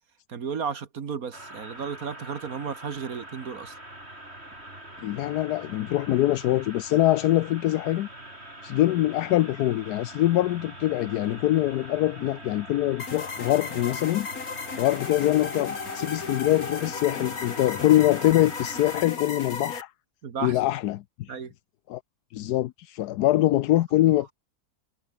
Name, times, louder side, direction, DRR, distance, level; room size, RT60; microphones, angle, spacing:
voice 1, 0.3-3.8 20.2-20.6 21.3-21.5, right 6 dB, 65° right, 2.0 m, -33 dB
sound 1, 1.3-19.0, right 1 dB, 40° right, 8.5 m, -43 dB
voice 2, 5.0-8.1 8.6-14.3 14.8-19.9 20.4-21.3 21.9-22.0 22.3-24.3, left 15 dB, 80° left, 1.2 m, -24 dB
sound 2, 13.0-19.8, left 5 dB, 65° left, 2.7 m, -35 dB
omnidirectional pair, 1.7 m